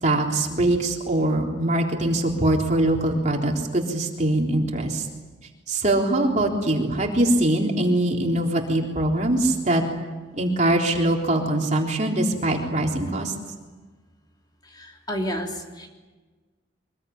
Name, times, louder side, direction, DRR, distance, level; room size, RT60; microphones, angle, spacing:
voice 1, 0.0-5.1 5.7-9.8 10.4-13.3, right 1 dB, 40° right, 0 dB, 3.7 m, -22 dB
voice 2, 14.7-15.9, equal, 25° left, 1 dB, 3.1 m, -31 dB
24.5 x 21.5 x 9.9 m, 1.3 s
head